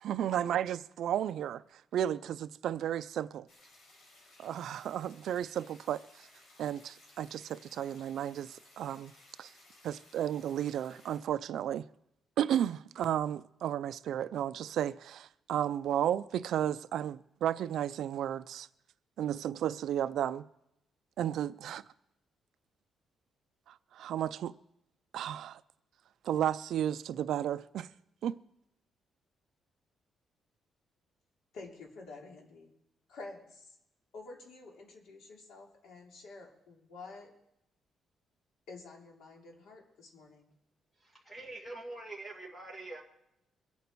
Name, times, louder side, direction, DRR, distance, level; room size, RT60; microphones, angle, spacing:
voice 1, 0.0-3.5 4.4-6.3 6.6-9.1 9.4-9.5 9.8-11.8 12.4-18.7 19.2-20.5 21.2-21.8 23.7-24.5 25.1-25.6 26.2-27.9 28.2-28.4, right 10 dB, 65° right, 0.4 m, -33 dB
sound 1, 3.5-11.2, left 2 dB, 65° left, 5.2 m, -60 dB
voice 2, 31.5-32.7 33.1-33.8 34.1-37.3 38.7-40.5, left 3 dB, 85° left, 3.0 m, -49 dB
voice 3, 41.0-43.0, right 2 dB, 10° left, 2.2 m, -44 dB
24.0 x 8.4 x 4.6 m
cardioid pair, 170°, 0 cm